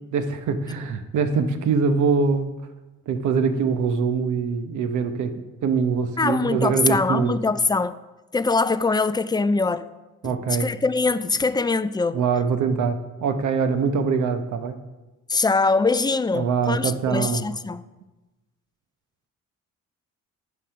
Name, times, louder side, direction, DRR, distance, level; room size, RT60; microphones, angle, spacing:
voice 1, 0.1-2.5 3.1-7.3 10.2-10.7 12.1-14.8 16.3-17.4, right 5 dB, 75° right, 1.0 m, -23 dB
voice 2, 6.2-7.9 8.3-9.9 10.2-12.2 15.3-17.8, left 3 dB, 15° left, 0.3 m, -23 dB
9.8 x 4.9 x 5.7 m
cardioid pair, 90°, 30 cm